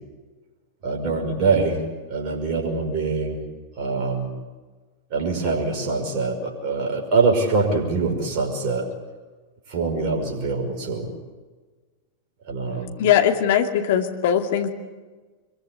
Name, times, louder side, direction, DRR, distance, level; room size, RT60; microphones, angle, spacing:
voice 1, 0.8-1.8 2.1-3.4 3.8-4.3 5.1-8.9 9.7-11.1 12.5-13.0, right 4 dB, 40° right, 1 dB, 5.7 m, -24 dB
voice 2, 13.0-14.7, left 9 dB, 55° left, 5 dB, 2.5 m, -20 dB
25.0 x 22.5 x 8.5 m, 1.3 s
figure-of-eight pair, 90°, 0 cm